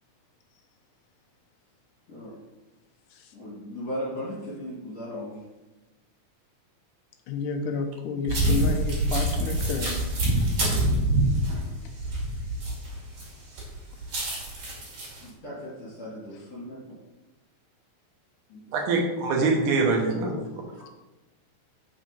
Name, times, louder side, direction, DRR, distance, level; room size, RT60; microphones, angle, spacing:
voice 1, 3.3-5.4 15.2-16.8 18.5-18.6 18.9-19.0, equal, 55° left, -10 dB, 4.1 m, -37 dB
voice 2, 7.3-10.0 16.3-16.4 19.4-19.6 20.8-20.9, left 5 dB, 75° left, 4 dB, 2.2 m, -31 dB
sound 1, 8.3-13.2 13.6-15.2, right 1 dB, 55° right, 3.5 m, -26 dB
voice 3, 18.7-20.6, right 3 dB, 70° right, 1 dB, 2.4 m, -24 dB
6.5 x 6.1 x 4.3 m, 1.1 s
omnidirectional pair, 3.9 m